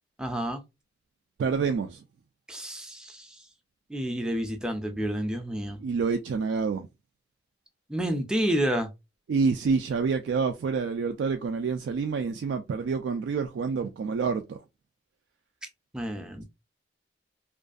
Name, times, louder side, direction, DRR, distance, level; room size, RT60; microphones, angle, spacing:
voice 1, 0.2-0.6 2.5-3.4 3.9-5.8 7.9-8.9 15.9-16.4, equal, 5° right, 0.3 m, -29 dB
voice 2, 1.4-2.0 5.8-6.9 9.3-14.6, right 5 dB, 80° right, 0.3 m, -27 dB
2.5 x 2.3 x 2.4 m
head